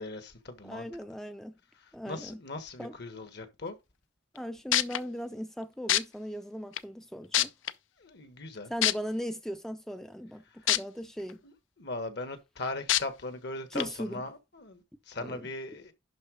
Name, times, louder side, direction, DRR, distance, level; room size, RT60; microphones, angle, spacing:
voice 1, 0.0-0.9 2.1-3.7 8.0-8.7 11.8-14.8 15.1-15.9, left 2 dB, 60° left, 1.4 m, -39 dB
voice 2, 0.6-1.5 1.9-2.4 2.8-3.0 4.3-7.5 8.7-11.4 13.7-14.2 15.2-15.5, equal, ahead, 0.4 m, -38 dB
sound 1, 4.4-4.5 4.7-5.0 5.9-6.0 6.8-6.9 7.3-7.7 8.8-8.9 10.7-10.8 11.3-11.4 12.9-13.0 13.8-13.9, left 12 dB, 75° left, 0.5 m, -24 dB
11.0 x 3.9 x 5.1 m
head